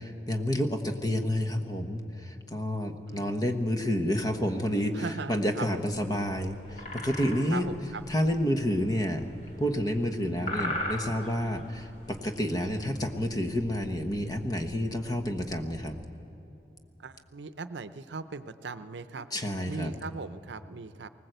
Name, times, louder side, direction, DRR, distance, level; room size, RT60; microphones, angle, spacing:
voice 1, 0.0-7.7 8.1-9.3 9.6-16.0 19.3-19.9, equal, 20° left, 6 dB, 1.1 m, -29 dB
voice 2, 3.1-3.4 4.9-5.8 7.5-8.0 17.0-19.3 19.6-21.1, right 4 dB, 80° right, 12 dB, 0.6 m, -39 dB
sound 1, 4.3-13.2, left 1 dB, 45° left, 2.7 m, -38 dB
sound 2, 5.9-16.0, equal, 80° left, 4.9 m, -52 dB
20.0 x 18.5 x 8.0 m, 2.8 s
head